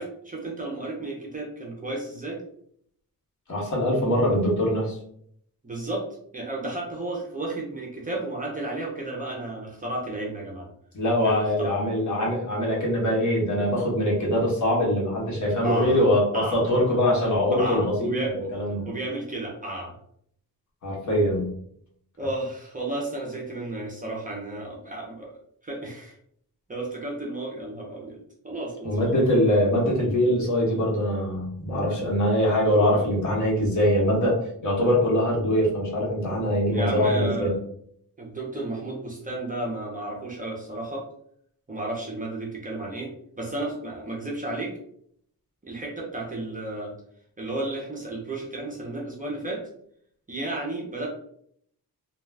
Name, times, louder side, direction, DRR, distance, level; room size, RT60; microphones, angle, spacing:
voice 1, 0.0-2.4 5.6-6.0 6.3-10.7 11.2-11.7 15.6-16.0 16.3-16.6 17.5-18.5 18.9-19.9 22.2-25.3 25.6-26.2 26.7-28.2 28.4-29.3 36.7-37.6 38.2-41.1 41.7-43.1 43.4-44.8 45.6-46.9 47.4-49.6 50.3-51.1, right 2 dB, 20° right, -3 dB, 0.6 m, -33 dB
voice 2, 3.5-5.0 10.9-18.9 20.8-21.5 28.8-37.5, equal, 50° left, -3 dB, 1.1 m, -23 dB
2.3 x 2.3 x 3.2 m, 0.68 s
wide cardioid pair, 135°, 36 cm